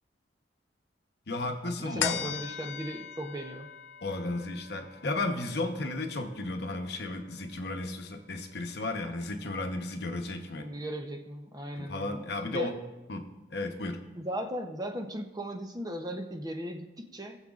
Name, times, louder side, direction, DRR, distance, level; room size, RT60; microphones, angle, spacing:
voice 1, 1.3-2.4 4.0-10.7 11.8-12.7 13.1-14.0, left 2 dB, 60° left, 5 dB, 0.9 m, -34 dB
voice 2, 1.8-3.7 10.6-12.2 12.5-12.7 14.2-17.4, right 1 dB, 20° right, 4 dB, 0.7 m, -37 dB
sound 1, 2.0-8.8 9.2-9.3, left 10 dB, 90° left, 0.5 m, -40 dB
19.5 x 7.1 x 2.5 m, 1.1 s
head